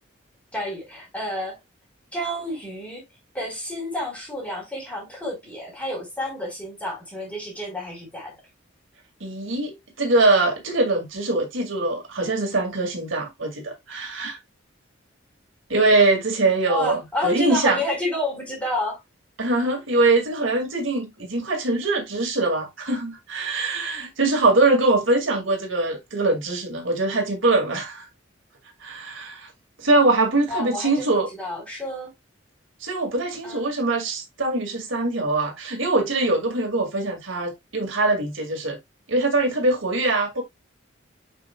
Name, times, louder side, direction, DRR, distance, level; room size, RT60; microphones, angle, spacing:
voice 1, 0.5-1.6 2.1-3.0 3.3-8.4 16.7-19.0 30.5-31.1 31.4-32.1 33.4-33.7, left 1 dB, 5° left, 4.2 m, -30 dB
voice 2, 9.2-14.4 15.7-17.8 19.4-28.1 28.8-29.5 29.8-31.3 32.8-38.8 39.1-40.4, right 2 dB, 75° right, 2.2 m, -22 dB
7.9 x 5.5 x 2.3 m
head